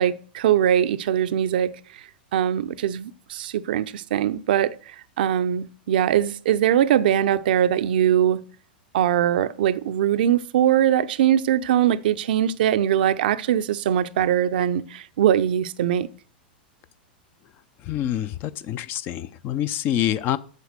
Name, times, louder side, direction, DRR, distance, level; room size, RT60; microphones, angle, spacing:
voice 1, 0.0-1.7 2.3-4.8 5.2-8.4 8.9-16.1, right 10 dB, 65° right, 0.6 m, -21 dB
voice 2, 17.8-20.4, left 11 dB, 40° left, 0.7 m, -26 dB
8.3 x 7.2 x 6.6 m
hypercardioid pair, 100°, 5 cm